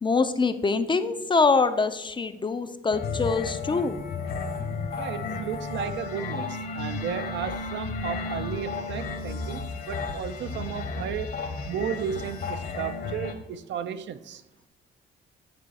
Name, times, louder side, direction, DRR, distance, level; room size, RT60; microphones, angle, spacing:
voice 1, 0.0-4.0, left 4 dB, 25° left, 11 dB, 0.4 m, -24 dB
sound 1, 2.9-13.3, left 4 dB, 50° left, 1.0 m, -33 dB
voice 2, 5.0-11.4 11.7-14.4, right 8 dB, 65° right, 11 dB, 0.5 m, -34 dB
9.0 x 3.1 x 4.1 m, 0.93 s
cardioid pair, 90°, 20 cm